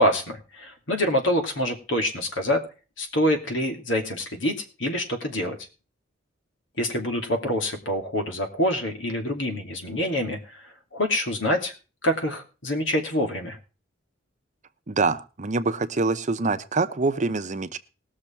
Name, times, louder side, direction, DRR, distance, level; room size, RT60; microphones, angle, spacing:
voice 1, 0.0-2.7 3.0-5.6 6.8-11.7 12.0-13.6, equal, 80° left, 5 dB, 2.7 m, -26 dB
voice 2, 14.9-17.8, right 3 dB, 40° right, 10 dB, 0.8 m, -25 dB
19.5 x 6.6 x 4.5 m, 0.33 s
head